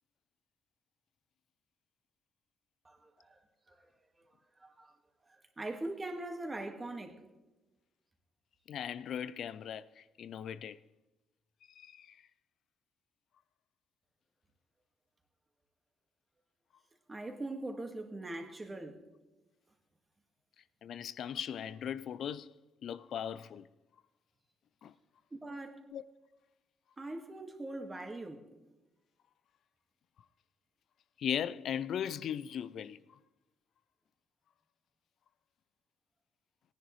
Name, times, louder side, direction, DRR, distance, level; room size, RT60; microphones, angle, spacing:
voice 1, 2.8-3.9 4.2-5.0 5.2-7.3 17.1-19.0 25.3-25.9 27.0-28.5, right 2 dB, 25° right, 1.7 m, -42 dB
voice 2, 8.7-10.8 11.8-12.2 20.8-22.5 22.8-23.7 24.8-24.9 25.9-26.0 31.2-33.0, left 9 dB, 70° left, 0.4 m, -38 dB
18.0 x 10.0 x 3.1 m
cardioid pair, 90°, 0 cm